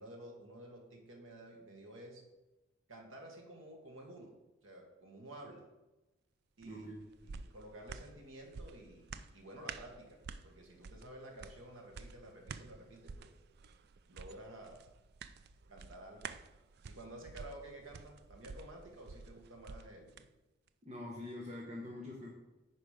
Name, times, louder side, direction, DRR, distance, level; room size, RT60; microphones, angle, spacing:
voice 1, 0.0-2.2 2.9-4.3 4.6-5.7 6.6-6.9 7.2-10.2 10.4-13.3 14.1-14.9 15.7-16.3 16.8-20.3, right 1 dB, 85° right, 1 dB, 1.8 m, -52 dB
voice 2, 6.6-7.0 20.8-22.3, left 1 dB, 35° right, -3 dB, 1.1 m, -45 dB
sound 1, 6.6-20.3 20.7-20.8, right 5 dB, 55° right, 0.4 m, -51 dB
9.4 x 4.9 x 5.0 m, 1.1 s
head